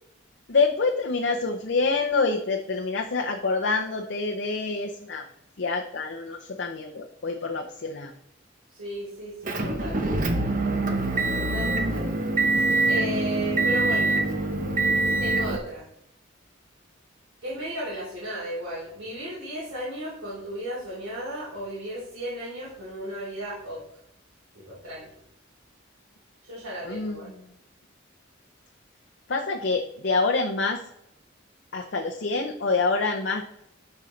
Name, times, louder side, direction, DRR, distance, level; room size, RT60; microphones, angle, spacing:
voice 1, 0.5-5.2 5.6-8.1 26.8-27.3 29.3-30.8 31.7-33.4, left 3 dB, 55° left, 1 dB, 0.7 m, -26 dB
voice 2, 8.7-10.1 11.3-12.1 12.9-14.2 15.0-15.8 17.4-23.8 24.5-25.1 26.4-27.3, equal, 80° right, -9 dB, 3.4 m, -35 dB
Motor vehicle (road) / Engine, 9.5-15.6, right 2 dB, 40° right, 1.0 m, -24 dB
11.0 x 5.3 x 3.2 m, 0.77 s
head